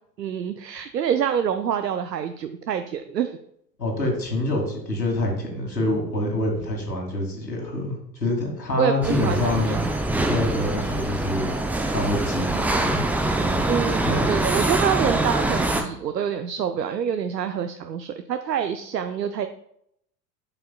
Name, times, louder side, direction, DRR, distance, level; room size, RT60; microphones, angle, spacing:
voice 1, 0.2-3.4 8.8-9.8 13.7-19.5, right 8 dB, 85° right, 8 dB, 0.6 m, -26 dB
voice 2, 3.8-11.5 11.9-13.0 14.0-14.3, left 1 dB, 85° left, 0 dB, 2.3 m, -26 dB
sound 1, 9.0-15.8, right 2 dB, 5° right, 0.4 m, -24 dB
11.5 x 5.6 x 2.3 m, 0.73 s
figure-of-eight pair, 85°, 49 cm